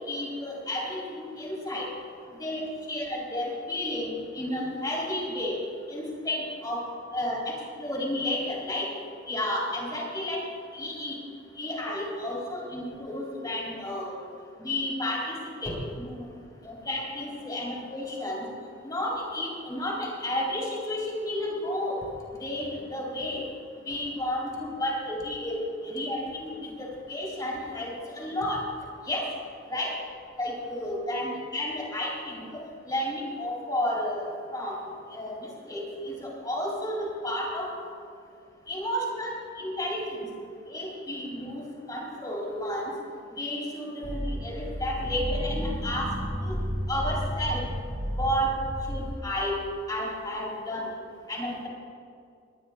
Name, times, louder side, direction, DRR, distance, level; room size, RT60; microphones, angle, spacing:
voice 1, 0.1-1.9 2.4-5.6 5.9-6.8 7.1-8.9 9.3-10.4 10.7-11.2 11.6-14.2 14.6-15.3 15.6-16.3 16.6-18.4 18.8-22.0 22.4-23.4 23.9-28.6 29.1-29.3 29.7-29.9 30.4-34.8 35.1-37.7 38.7-40.3 40.7-41.6 41.9-42.9 43.4-46.1 46.4-46.5 46.9-47.6 48.2-48.5 48.9-49.6 49.9-50.9 51.3-51.7, left 1 dB, 20° left, -3 dB, 3.7 m, -32 dB
sound 1, 44.0-49.1, equal, 40° right, 1.5 m, -32 dB
21.0 x 20.5 x 2.4 m, 2.4 s
head